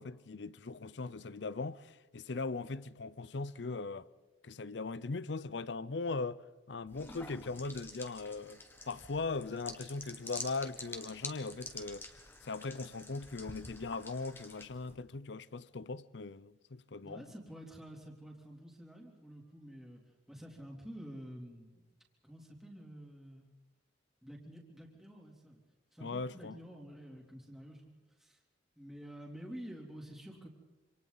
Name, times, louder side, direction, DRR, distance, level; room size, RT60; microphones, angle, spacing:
voice 1, 0.0-4.1 4.4-6.4 6.7-12.1 12.4-17.2 26.0-26.6, left 3 dB, 70° left, 0.6 m, -39 dB
sound 1, 6.9-15.0, left 2 dB, 15° left, 1.7 m, -48 dB
voice 2, 17.0-20.0 20.3-21.8 22.2-23.5 24.2-25.6 25.9-27.9 28.2-28.4 28.8-30.5, equal, ahead, 3.2 m, -49 dB
27.5 x 27.0 x 4.1 m
head